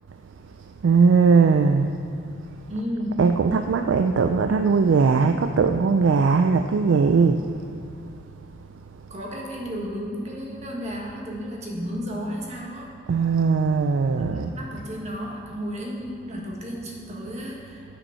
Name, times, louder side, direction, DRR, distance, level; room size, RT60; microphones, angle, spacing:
voice 1, 0.8-2.0 3.2-7.4 13.1-14.5, right 5 dB, 70° right, 7 dB, 0.4 m, -19 dB
voice 2, 2.7-3.3 9.1-12.9 14.2-17.8, equal, 35° right, -2 dB, 1.5 m, -33 dB
8.5 x 7.0 x 5.6 m, 2.6 s
head